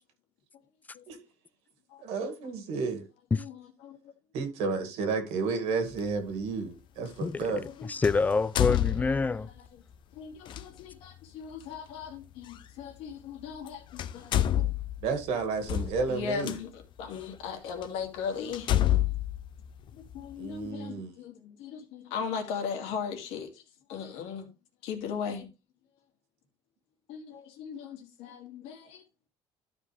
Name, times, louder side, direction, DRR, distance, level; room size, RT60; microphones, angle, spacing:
voice 1, 2.0-3.0 4.3-7.6 15.0-16.6 20.4-21.1, right 4 dB, 80° right, 2.2 m, -31 dB
sound 1, 5.9-6.1 8.0-9.5 10.4-10.6 12.5-12.6 13.5-13.7 14.0-16.6 17.2-17.3 17.8-17.9 18.5-20.3, left 12 dB, 50° left, 0.6 m, -28 dB
voice 2, 7.8-9.5, left 4 dB, 15° left, 0.4 m, -26 dB
voice 3, 10.2-14.6 16.1-16.7 17.0-18.7 20.1-23.5 23.9-24.5 24.8-25.5 27.1-29.0, left 6 dB, 80° left, 2.4 m, -38 dB
12.5 x 5.3 x 3.3 m
cardioid pair, 125°, 10 cm